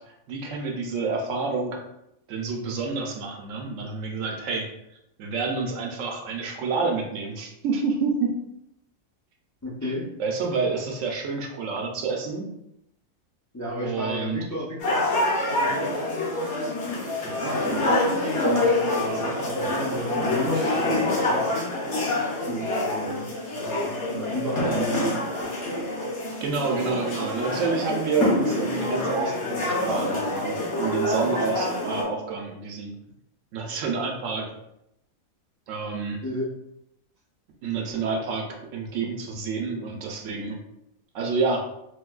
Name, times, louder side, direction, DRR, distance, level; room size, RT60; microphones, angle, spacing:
voice 1, 0.3-1.8 2.3-4.7 5.2-8.3 10.2-12.5 13.8-14.4 26.4-32.9 33.5-34.5 35.7-36.2 37.6-40.6 41.1-41.7, right 4 dB, 70° right, 1 dB, 0.9 m, -28 dB
voice 2, 9.6-10.0 13.5-15.9 17.2-21.7 22.5-23.2 23.5-25.5 36.2-36.5, equal, 25° left, -5 dB, 0.4 m, -33 dB
sound 1, 14.8-32.0, left 1 dB, 60° left, 1.1 m, -26 dB
4.5 x 2.2 x 2.3 m, 0.81 s
omnidirectional pair, 1.4 m